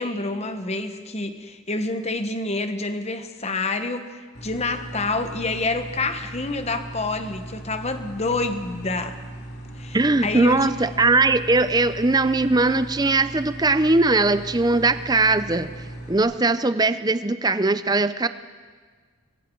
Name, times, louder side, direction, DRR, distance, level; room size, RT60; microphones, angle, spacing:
voice 1, 0.0-9.2 9.8-10.0 10.2-10.7, left 3 dB, 30° left, 8 dB, 1.1 m, -28 dB
sound 1, 4.3-16.2, right 1 dB, 45° left, 3.4 m, -38 dB
voice 2, 9.9-15.7 16.1-18.3, right 3 dB, 15° right, 12 dB, 0.5 m, -20 dB
28.5 x 22.0 x 4.6 m, 1.5 s
head